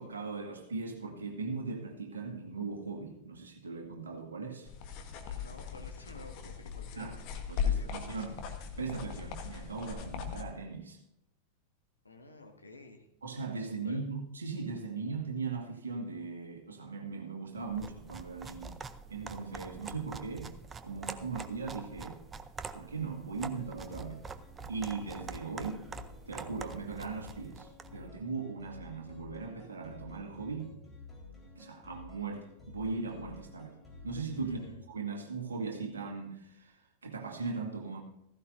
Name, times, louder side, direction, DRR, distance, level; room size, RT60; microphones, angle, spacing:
voice 1, 0.0-4.7 7.0-7.2 7.5-8.4 8.8-11.0 13.2-18.8 19.1-20.5 20.8-22.2 22.7-24.2 24.7-25.8 26.3-30.7 31.6-33.8 34.0-38.0, right 4 dB, 70° right, 2.0 m, -39 dB
sound 1, 4.7-10.4, left 7 dB, 45° left, 1.4 m, -38 dB
voice 2, 5.2-7.1 7.6-8.3 12.0-13.1 13.8-14.0 34.4-34.8, left 2 dB, 80° left, 1.7 m, -52 dB
sound 2, 17.7-28.0, right 5 dB, 20° right, 0.6 m, -45 dB
sound 3, 23.4-34.8, left 3 dB, 15° left, 4.2 m, -52 dB
15.5 x 15.0 x 2.6 m
figure-of-eight pair, 90°, 0 cm